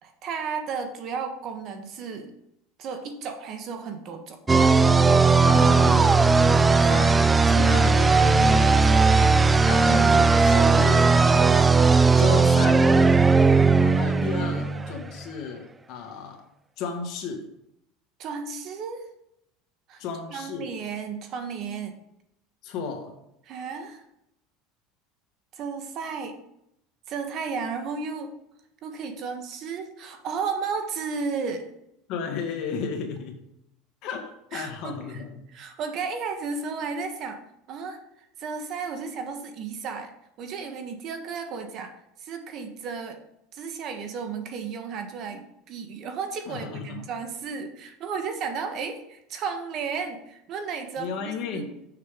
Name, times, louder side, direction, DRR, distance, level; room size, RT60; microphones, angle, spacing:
voice 1, 0.0-2.3 2.8-4.4 14.1-14.9 18.2-19.0 19.9-20.0 20.3-22.0 23.5-24.0 25.5-26.4 27.1-28.3 28.8-31.7 34.5-35.2 35.5-37.4 37.7-38.0 38.4-40.1 40.4-41.9 42.2-43.2 43.5-51.7, right 5 dB, 50° right, 6 dB, 1.4 m, -33 dB
sound 1, 4.5-15.1, right 4 dB, 15° right, 0.4 m, -18 dB
voice 2, 5.4-6.2 6.8-7.2 7.5-9.1 9.6-11.8 12.2-12.9 13.8-16.4 16.8-17.5 20.0-20.7 22.6-23.1 32.1-33.3 34.0-35.4 46.5-47.1 51.0-51.6, left 6 dB, 55° left, 3 dB, 1.9 m, -33 dB
6.9 x 6.6 x 5.2 m, 0.79 s
supercardioid pair, 125°, 0 cm